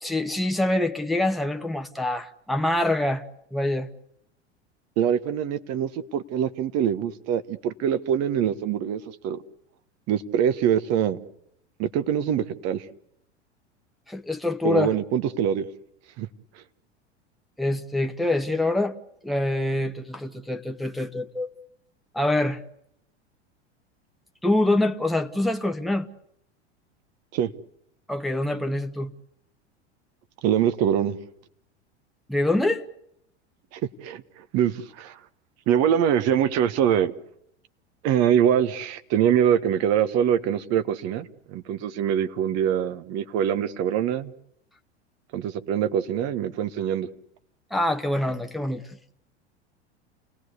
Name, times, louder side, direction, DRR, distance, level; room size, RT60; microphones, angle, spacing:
voice 1, 0.0-3.2 3.5-3.9 14.1-14.9 17.6-19.0 19.2-21.5 22.1-22.6 24.4-26.1 28.1-29.1 32.3-32.8 47.7-48.9, left 1 dB, ahead, 1.1 m, -25 dB
voice 2, 5.0-9.4 10.1-11.2 11.8-12.8 14.6-15.7 16.2-16.3 27.3-27.5 30.4-31.2 33.7-35.2 35.7-37.1 38.0-44.3 45.3-47.1, right 9 dB, 45° right, 1.4 m, -24 dB
29.5 x 18.5 x 8.2 m
hypercardioid pair, 85°, 34 cm